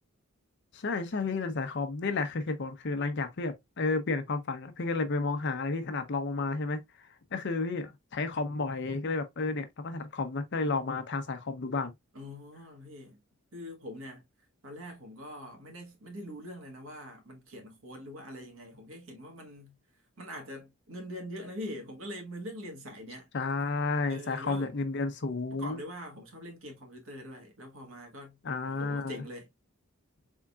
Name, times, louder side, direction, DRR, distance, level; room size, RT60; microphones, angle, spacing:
voice 1, 0.7-11.9 23.3-25.8 28.4-29.2, left 3 dB, 55° left, 0.6 m, -32 dB
voice 2, 12.1-13.2 13.5-14.2 14.6-19.7 20.2-23.3 24.1-24.7 25.5-28.4 28.7-29.5, equal, 70° right, 1.2 m, -43 dB
3.7 x 3.6 x 2.2 m
head